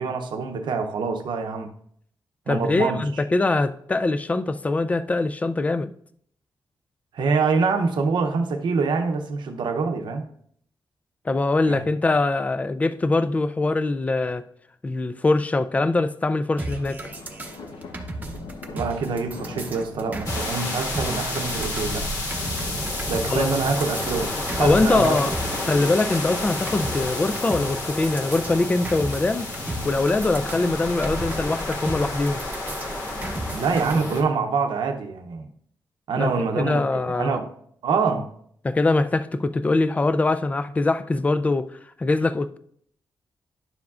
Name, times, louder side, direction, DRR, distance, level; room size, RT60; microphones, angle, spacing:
voice 1, 0.0-1.7 2.5-3.0 7.1-10.2 11.7-11.8 18.7-22.0 23.1-25.2 25.7-25.8 33.5-35.5 36.1-37.5 37.8-38.3, right 4 dB, 75° right, 0.7 m, -25 dB
voice 2, 2.5-5.9 11.3-14.5 14.8-17.0 23.3-23.5 24.6-25.3 25.7-29.5 29.8-32.4 36.2-37.4 38.6-42.6, left 2 dB, 20° left, 0.3 m, -23 dB
sound 1, 16.6-33.9, right 1 dB, 20° right, 0.8 m, -35 dB
sound 2, 16.7-32.4, left 2 dB, 85° left, 0.9 m, -41 dB
sound 3, 20.3-34.2, left 2 dB, 50° left, 1.6 m, -30 dB
10.5 x 7.0 x 2.5 m
wide cardioid pair, 170°, 8 cm